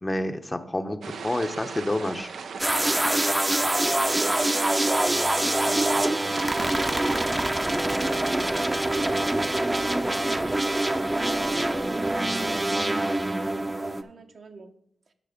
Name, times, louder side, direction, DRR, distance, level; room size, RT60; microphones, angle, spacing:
voice 1, 0.0-2.3, left 1 dB, 25° left, 6 dB, 0.9 m, -29 dB
sound 1, 1.0-7.1, right 6 dB, 80° right, 0.5 m, -37 dB
sound 2, 2.6-14.0, right 1 dB, 20° right, 0.7 m, -25 dB
voice 2, 4.3-7.4 7.8-10.6 11.2-14.7 15.1-15.2, right 4 dB, 65° right, 4 dB, 1.0 m, -45 dB
9.3 x 5.9 x 5.1 m, 0.72 s
cardioid pair, 50°, 0 cm